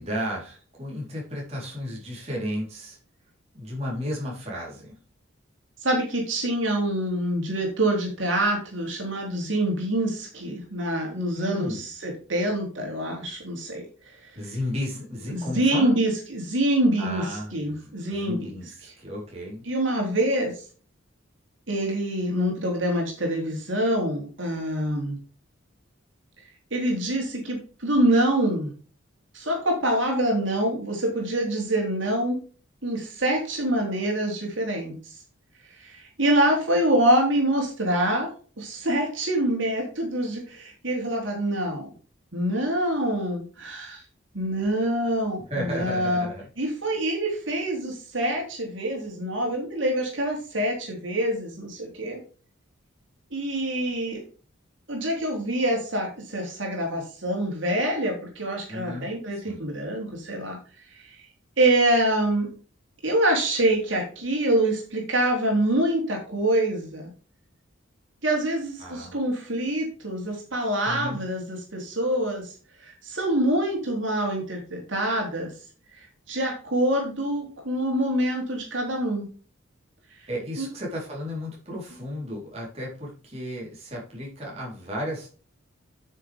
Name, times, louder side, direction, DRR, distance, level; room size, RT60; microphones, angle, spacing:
voice 1, 0.0-3.0 3.5-4.9 11.3-11.9 14.4-16.0 17.0-19.6 45.4-46.4 58.7-59.6 68.8-69.2 70.8-71.2 80.3-85.3, equal, 30° right, -4 dB, 4.1 m, -33 dB
voice 2, 5.8-13.8 15.3-18.5 18.8-18.9 19.7-20.5 21.7-25.2 26.7-28.7 29.3-32.4 32.8-34.9 35.8-38.3 38.6-41.9 42.3-44.0 44.3-46.3 46.6-52.2 53.3-54.2 54.9-60.6 61.6-62.5 63.0-67.1 68.2-72.5 72.8-75.5 76.3-79.3 80.6-80.7, right 1 dB, 70° right, -1 dB, 3.5 m, -25 dB
9.3 x 6.7 x 3.6 m, 0.39 s
head